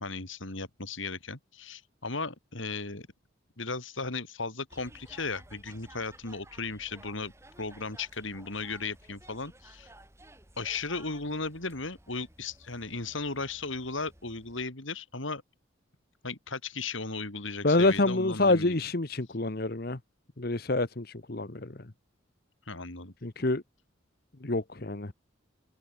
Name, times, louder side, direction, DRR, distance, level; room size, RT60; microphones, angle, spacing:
voice 1, 0.0-3.1 3.6-7.3 7.6-9.9 10.6-15.4 16.2-18.7 22.7-23.1, left 3 dB, 75° left, 3.4 m, -36 dB
sound 1, 4.7-14.6, right 1 dB, 15° right, 7.5 m, -55 dB
voice 2, 17.6-20.0 20.4-21.8 23.2-23.6 24.4-25.1, left 2 dB, 50° left, 1.1 m, -27 dB
open air
head